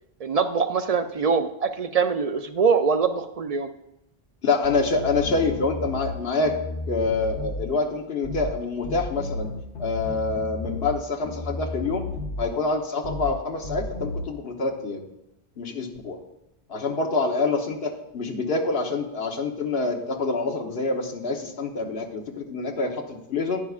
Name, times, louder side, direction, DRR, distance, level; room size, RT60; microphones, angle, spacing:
voice 1, 0.2-3.7, right 5 dB, 55° right, 8 dB, 0.4 m, -23 dB
voice 2, 4.4-6.5 6.9-9.5 9.8-12.1 12.4-15.0 15.6-16.2 16.7-23.6, left 3 dB, 70° left, 3 dB, 1.3 m, -26 dB
sound 1, 4.6-6.2 6.4-7.7 8.2-8.6 8.8-11.0 11.2-12.5 13.0-13.4 13.6-14.2, left 3 dB, 85° left, 1.5 m, -33 dB
11.0 x 9.4 x 2.4 m, 0.89 s
omnidirectional pair, 1.1 m